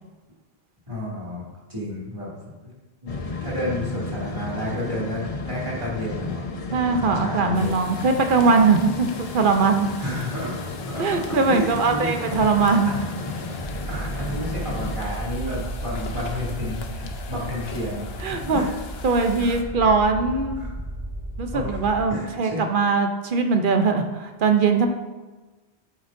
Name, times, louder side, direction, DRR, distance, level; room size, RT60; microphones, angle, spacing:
voice 1, 0.9-1.4 1.7-2.3 2.6-2.7 3.0-6.4 7.0-7.8 10.0-10.6 10.9-12.5 12.8-12.9 13.2-18.7 19.1-19.9 20.6-20.7 21.5-21.8 22.1-22.6, left 1 dB, 30° right, -7 dB, 2.5 m, -31 dB
sound 1, 3.1-15.0, left 3 dB, 40° left, 0.6 m, -33 dB
voice 2, 6.7-9.9 11.0-12.9 18.2-18.7 19.0-20.7 21.4-24.9, right 4 dB, 55° right, 5 dB, 0.9 m, -21 dB
sound 2, 7.5-19.6, left 5 dB, 70° left, 1.0 m, -41 dB
sound 3, 13.6-22.1, right 1 dB, 10° right, 1.6 m, -34 dB
8.6 x 8.1 x 2.6 m, 1.2 s
omnidirectional pair, 1.1 m